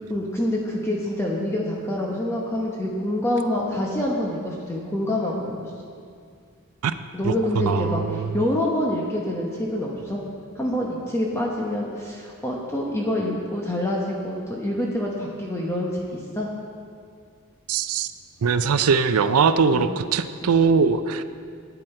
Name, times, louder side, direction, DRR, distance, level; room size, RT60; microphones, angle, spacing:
voice 1, 0.1-5.7 7.1-10.2 10.6-16.5 19.7-19.9 20.4-20.5, left 1 dB, 10° left, -3 dB, 1.0 m, -26 dB
voice 2, 7.2-8.3 17.7-18.1 18.4-21.2, right 5 dB, 75° right, 10 dB, 0.5 m, -21 dB
11.5 x 9.2 x 4.4 m, 2.2 s
head